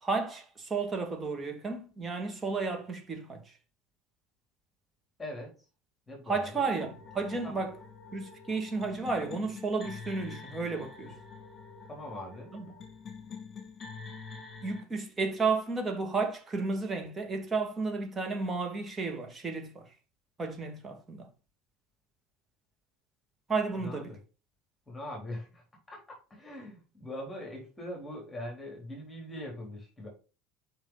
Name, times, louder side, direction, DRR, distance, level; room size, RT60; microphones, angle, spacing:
voice 1, 0.0-3.4 6.3-7.7 8.1-11.1 12.5-12.7 14.6-19.9 20.4-21.3 23.5-24.1, right 4 dB, 25° right, 2.3 m, -32 dB
voice 2, 5.2-5.7 6.1-6.7 7.4-7.7 11.9-12.5 23.7-24.2 24.9-30.1, left 1 dB, 15° left, 3.7 m, -42 dB
sound 1, 6.8-14.8, left 5 dB, 30° left, 2.5 m, -46 dB
7.2 x 5.7 x 4.0 m
figure-of-eight pair, 65°, 0 cm